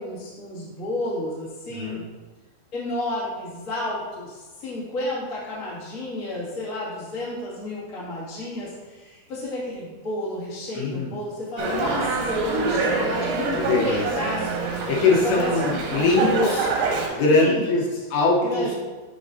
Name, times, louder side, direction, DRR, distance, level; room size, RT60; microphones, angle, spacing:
voice 1, 0.0-2.1 2.7-14.9 15.2-15.7 17.3-17.8 18.4-18.8, left 1 dB, 35° left, -8 dB, 1.3 m, -31 dB
voice 2, 1.7-2.0 10.7-11.1 13.5-14.1 14.9-16.7 17.1-17.8 18.1-18.7, left 3 dB, 75° left, -2 dB, 3.0 m, -21 dB
Dog, 11.6-17.1, right 4 dB, 70° right, 2.3 m, -25 dB
8.6 x 5.8 x 2.7 m, 1.3 s
omnidirectional pair, 5.1 m